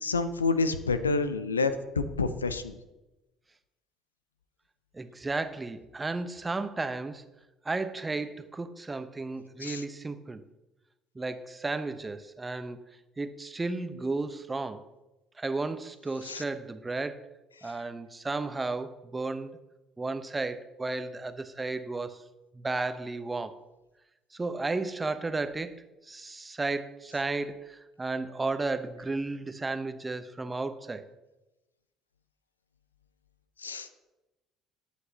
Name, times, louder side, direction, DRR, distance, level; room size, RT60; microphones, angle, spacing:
voice 1, 0.0-2.8 9.6-9.8 16.2-16.4 33.6-33.9, left 4 dB, 85° left, 12 dB, 0.6 m, -28 dB
voice 2, 4.9-7.2 7.6-10.4 11.1-12.8 13.2-14.8 15.4-17.3 17.6-19.6 20.0-22.2 22.5-23.6 24.3-31.1, right 3 dB, 20° right, 11 dB, 0.9 m, -33 dB
20.0 x 8.1 x 2.9 m, 1.0 s
figure-of-eight pair, 55°, 0 cm